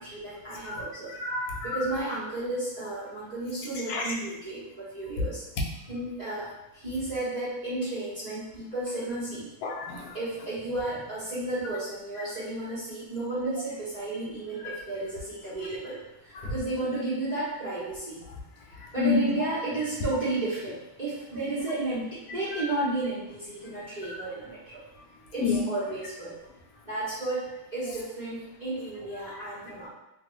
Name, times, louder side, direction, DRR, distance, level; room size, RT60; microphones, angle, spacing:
voice 1, 0.0-1.1 1.6-5.4 5.9-6.5 6.7-9.5 10.1-16.0 16.2-18.2 18.9-24.8 25.3-26.3 26.8-29.9, right 2 dB, 35° right, -10 dB, 0.7 m, -33 dB
voice 2, 1.1-1.8 3.9-4.0 9.6-10.1 16.4-16.5 19.0-19.4 25.4-25.6, left 5 dB, 75° left, -1 dB, 0.8 m, -28 dB
3.2 x 2.3 x 3.1 m, 0.91 s
omnidirectional pair, 2.3 m